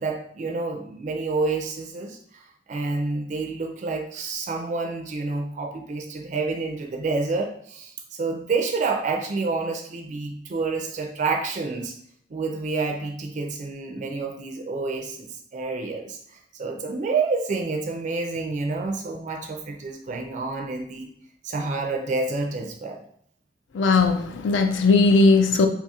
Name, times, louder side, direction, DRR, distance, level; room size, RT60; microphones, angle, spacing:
voice 1, 0.0-12.0 12.3-21.1 21.4-23.0, right 3 dB, 40° right, 3 dB, 0.4 m, -28 dB
voice 2, 23.7-25.7, left 3 dB, 80° left, 7 dB, 0.4 m, -18 dB
2.8 x 2.3 x 4.1 m, 0.67 s
head